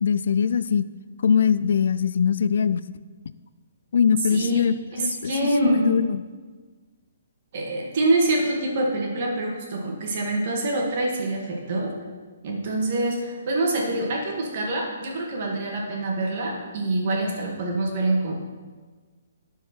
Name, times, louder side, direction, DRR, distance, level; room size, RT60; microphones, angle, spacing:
voice 1, 0.0-0.8 1.2-2.8 3.9-6.2, left 7 dB, 70° left, 15 dB, 0.3 m, -22 dB
voice 2, 4.3-4.7 4.9-5.9 7.5-11.9 12.4-18.3, right 2 dB, 45° right, -1 dB, 1.9 m, -25 dB
12.0 x 4.7 x 4.5 m, 1.4 s
hypercardioid pair, 155°, 0 cm